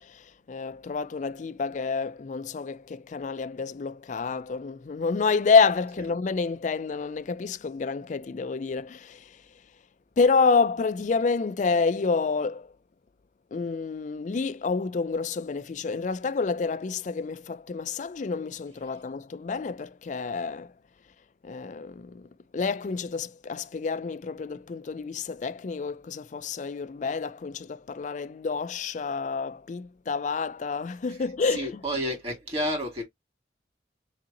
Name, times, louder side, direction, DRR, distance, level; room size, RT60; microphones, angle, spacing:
voice 1, 0.0-9.4 10.2-12.7 13.5-20.7 21.4-31.8, left 4 dB, 40° left, 0.3 m, -28 dB
voice 2, 31.5-33.0, equal, 30° right, 2.2 m, -30 dB
4.0 x 3.8 x 2.8 m
head